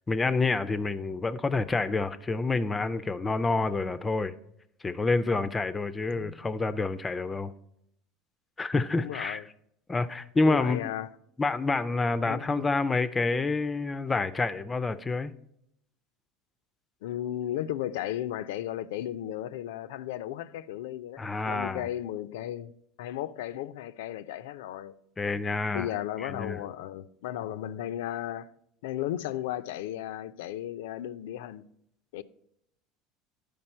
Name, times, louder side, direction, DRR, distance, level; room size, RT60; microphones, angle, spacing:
voice 1, 0.1-4.3 4.8-7.5 8.6-9.4 9.9-10.9 11.4-15.3 21.2-21.9 25.2-25.9 26.2-26.6, left 3 dB, 20° left, 0.4 m, -28 dB
voice 2, 9.0-9.4 10.4-11.1 12.2-12.7 17.0-22.7 23.0-24.9 25.7-28.5 28.8-31.6 32.1-32.2, left 12 dB, 80° left, 0.4 m, -35 dB
11.0 x 5.2 x 4.3 m
supercardioid pair, 105°, 0 cm